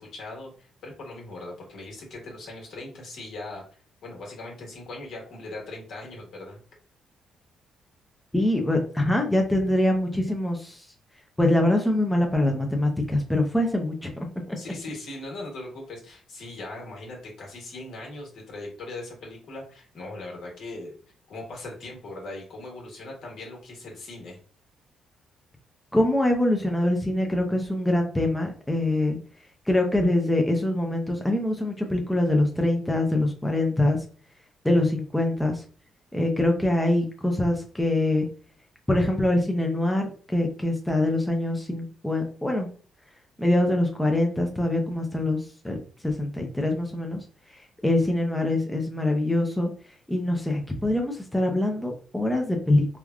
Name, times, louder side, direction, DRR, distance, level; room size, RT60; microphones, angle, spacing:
voice 1, 0.0-6.6 14.5-20.9 21.3-24.4, left 2 dB, 65° left, -1 dB, 1.3 m, -39 dB
voice 2, 8.3-10.8 11.4-14.1 14.5-14.6 25.9-29.2 29.7-34.0 34.6-35.6 36.1-38.2 38.9-42.7 43.4-45.8 46.0-47.2 47.8-49.7 50.1-52.9, left 1 dB, 5° left, 2 dB, 0.5 m, -24 dB
3.3 x 2.2 x 2.4 m, 0.40 s
cardioid pair, 90°, 0 cm